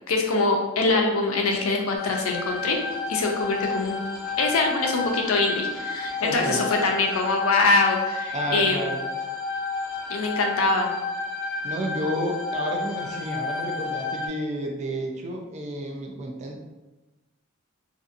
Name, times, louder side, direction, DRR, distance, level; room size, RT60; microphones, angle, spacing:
voice 1, 0.1-2.8 3.1-4.0 4.4-8.9 10.1-10.9, left 3 dB, 80° left, 2 dB, 0.5 m, -23 dB
sound 1, 1.9-14.3, left 4 dB, 5° right, 1.2 m, -31 dB
voice 2, 6.2-6.7 8.3-9.0 11.6-16.6, equal, 35° right, 1 dB, 0.4 m, -31 dB
2.6 x 2.5 x 2.4 m, 1.1 s
head